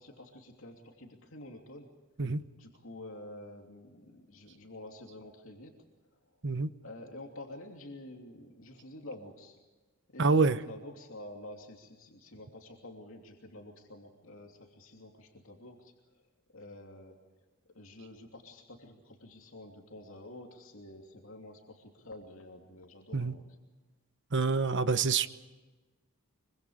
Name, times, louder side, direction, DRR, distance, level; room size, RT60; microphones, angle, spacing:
voice 1, 0.0-1.9 2.5-5.7 6.1-6.2 6.8-9.6 10.1-15.9 16.5-17.2 17.7-23.4, left 1 dB, 65° left, 1 dB, 3.0 m, -49 dB
voice 2, 10.2-10.6 23.1-23.3 24.3-25.3, right 4 dB, 55° right, 12 dB, 1.0 m, -26 dB
25.0 x 24.5 x 5.1 m, 1.2 s
head